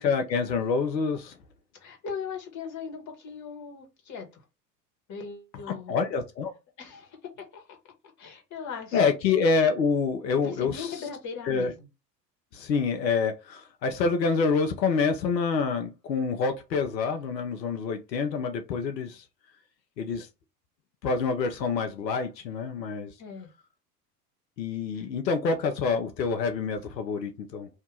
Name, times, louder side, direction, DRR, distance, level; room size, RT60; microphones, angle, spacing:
voice 1, 0.0-1.4 5.7-6.5 8.9-10.9 11.5-11.7 12.5-19.2 20.0-20.3 21.0-23.1 24.6-27.7, left 5 dB, 85° left, 0.7 m, -27 dB
voice 2, 1.8-4.4 5.1-6.0 6.8-7.8 8.2-9.1 10.4-11.9 23.2-23.5 24.9-25.0, left 6 dB, 35° left, 1.5 m, -39 dB
2.8 x 2.7 x 3.7 m
hypercardioid pair, 85°, 50 cm